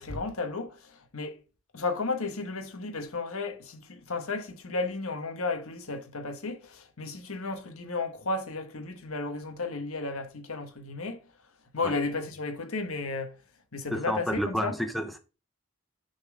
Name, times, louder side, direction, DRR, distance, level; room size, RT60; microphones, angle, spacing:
voice 1, 0.0-1.4 1.7-11.2 11.7-13.4 13.7-14.7, left 3 dB, 75° left, 1.2 m, -33 dB
voice 2, 13.9-15.2, equal, ahead, 0.7 m, -30 dB
6.8 x 4.2 x 5.0 m
head